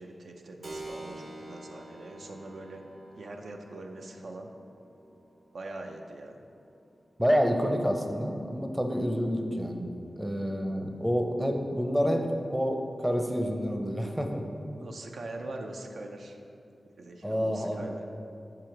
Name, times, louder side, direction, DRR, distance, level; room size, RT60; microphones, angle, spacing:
voice 1, 0.0-2.8 3.2-4.5 5.5-6.4 14.8-16.4 17.0-18.0, right 2 dB, 85° right, 3 dB, 0.5 m, -42 dB
Keyboard (musical), 0.6-8.8, right 1 dB, 55° right, 0.9 m, -48 dB
voice 2, 7.2-9.9 10.2-14.4 17.2-17.9, equal, 10° right, 3 dB, 0.5 m, -28 dB
4.9 x 4.7 x 5.8 m, 2.6 s
wide cardioid pair, 100°, 0 cm